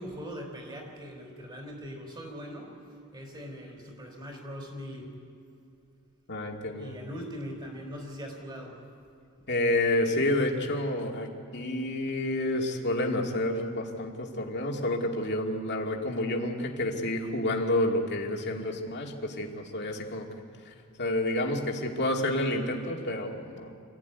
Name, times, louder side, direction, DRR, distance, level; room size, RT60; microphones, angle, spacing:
voice 1, 0.0-2.7 3.1-5.1 6.8-8.8, equal, 20° right, 2 dB, 4.4 m, -41 dB
voice 2, 6.3-6.9 9.5-20.3 20.7-23.7, left 1 dB, 50° left, 1 dB, 2.4 m, -29 dB
25.5 x 14.5 x 9.5 m, 2.5 s
head